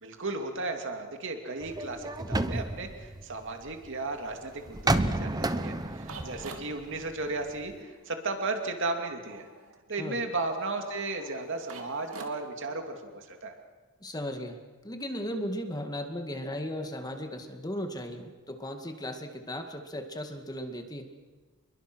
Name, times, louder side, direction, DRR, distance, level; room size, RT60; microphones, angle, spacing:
voice 1, 0.0-9.5 9.9-13.5, right 3 dB, 60° right, 4 dB, 2.6 m, -35 dB
sound 1, 1.6-3.9 4.7-7.5 7.8-7.9, right 2 dB, 20° right, 1.0 m, -31 dB
sound 2, 4.0-12.8, right 3 dB, 80° right, 2.9 m, -50 dB
voice 2, 14.0-14.6 14.8-21.1, equal, 20° left, 5 dB, 2.1 m, -36 dB
28.0 x 22.5 x 6.3 m, 1.4 s
head